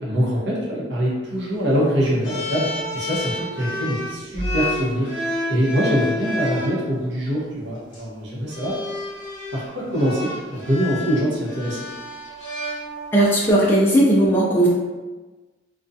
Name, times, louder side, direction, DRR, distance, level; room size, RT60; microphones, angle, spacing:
voice 1, 0.0-2.7 2.9-5.1 5.5-8.8 9.5-11.8, equal, 60° right, -6 dB, 0.8 m, -23 dB
sound 1, 2.2-6.8 7.8-8.0 8.5-13.3, left 1 dB, 70° left, 0.7 m, -29 dB
voice 2, 13.1-14.7, right 1 dB, 10° left, -6 dB, 0.3 m, -16 dB
2.4 x 2.2 x 2.6 m, 1.2 s
head